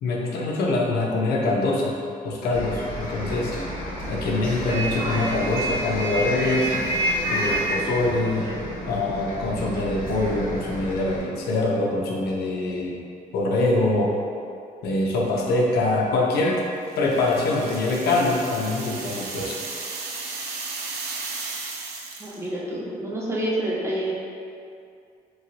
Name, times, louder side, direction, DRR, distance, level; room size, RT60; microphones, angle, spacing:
voice 1, 0.0-2.0 2.2-3.5 4.1-6.7 7.3-8.5 8.9-13.0 13.3-14.1 14.8-16.6 17.0-19.6, left 2 dB, 75° left, -2 dB, 0.5 m, -24 dB
Bus, 2.5-11.2, right 1 dB, 55° left, 1.3 m, -29 dB
sound 1, 16.9-22.4, right 3 dB, 80° right, 0.5 m, -35 dB
voice 2, 22.2-24.1, right 1 dB, 15° right, -5 dB, 0.7 m, -28 dB
3.1 x 2.7 x 2.4 m, 2.4 s
supercardioid pair, 75°, 17 cm